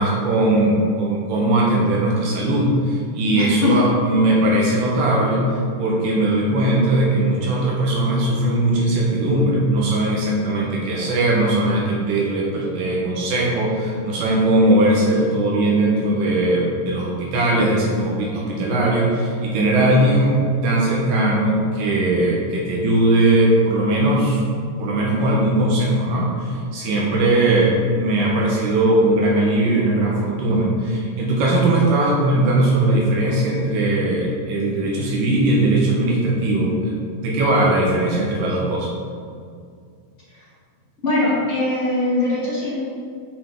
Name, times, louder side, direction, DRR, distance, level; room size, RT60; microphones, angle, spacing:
voice 1, 0.0-24.4 24.8-37.0 37.2-38.9, right 1 dB, 70° right, -3 dB, 2.5 m, -19 dB
voice 2, 3.3-3.9 41.0-42.8, left 2 dB, 40° left, -9 dB, 1.0 m, -21 dB
7.7 x 5.4 x 3.6 m, 2.2 s
omnidirectional pair, 4.4 m